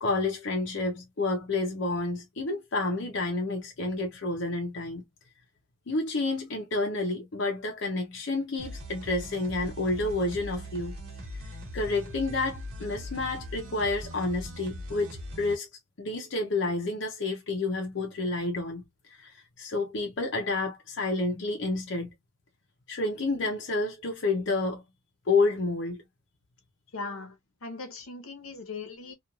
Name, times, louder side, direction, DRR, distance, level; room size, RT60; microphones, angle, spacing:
voice 1, 0.0-5.0 5.9-10.9 11.4-15.7 16.0-22.1 22.9-24.8 25.3-26.0, left 3 dB, 60° left, 0.6 m, -30 dB
sound 1, 8.6-15.6, equal, 70° right, 1.3 m, -40 dB
voice 2, 26.9-29.1, left 3 dB, 85° left, 0.9 m, -39 dB
2.9 x 2.4 x 2.3 m
head